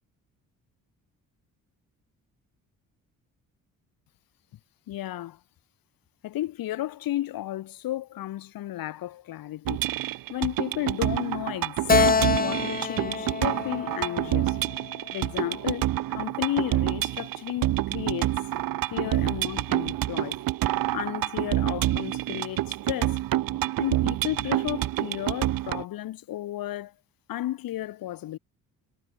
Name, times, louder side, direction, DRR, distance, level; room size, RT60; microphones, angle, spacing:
voice 1, 4.9-5.4 6.2-14.6 15.1-15.9 16.1-18.3 18.9-20.4 20.9-23.2 23.8-26.9 27.3-28.4, left 14 dB, 85° left, 5.9 m, -33 dB
sound 1, 9.7-25.8, right 14 dB, 80° right, 1.6 m, -28 dB
Keyboard (musical), 11.9-15.3, left 5 dB, 25° left, 1.4 m, -27 dB
cardioid pair, 120°, 34 cm